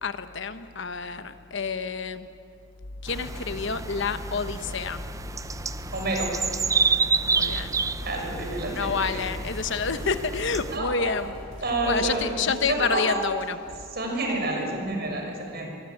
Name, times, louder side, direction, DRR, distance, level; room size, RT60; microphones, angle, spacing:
voice 1, 0.0-2.3 3.0-5.0 7.3-7.8 8.6-11.4 11.9-13.6, left 5 dB, 60° left, 10 dB, 1.1 m, -28 dB
sound 1, 3.1-10.8, right 4 dB, 15° right, 0.5 m, -29 dB
voice 2, 5.9-6.3 8.0-9.2 10.7-11.1 11.6-12.3 12.7-13.2 13.9-15.7, right 2 dB, 50° right, 2 dB, 6.0 m, -29 dB
sound 2, 7.1-12.2, equal, 75° right, 7.1 m, -43 dB
24.0 x 22.0 x 9.1 m, 2.5 s
head